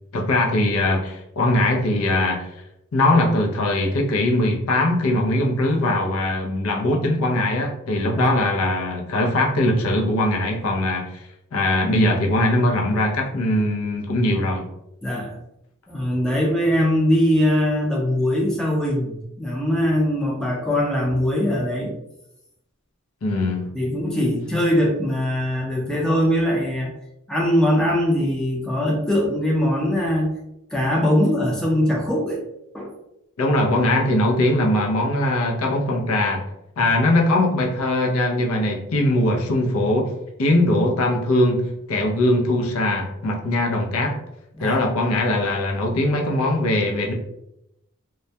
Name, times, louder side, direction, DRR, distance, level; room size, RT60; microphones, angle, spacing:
voice 1, 0.1-2.5 2.9-11.2 11.5-14.7 23.2-23.7 33.4-36.4 36.8-40.1 40.4-44.2 44.6-47.1, left 1 dB, 80° left, 1 dB, 0.5 m, -21 dB
voice 2, 15.0-15.4 15.9-21.9 23.7-26.9 27.3-30.3 30.7-32.4 32.7-32.9 36.8-36.9 44.6-44.8, equal, 5° left, -3 dB, 0.4 m, -21 dB
2.2 x 2.1 x 2.6 m, 0.84 s
head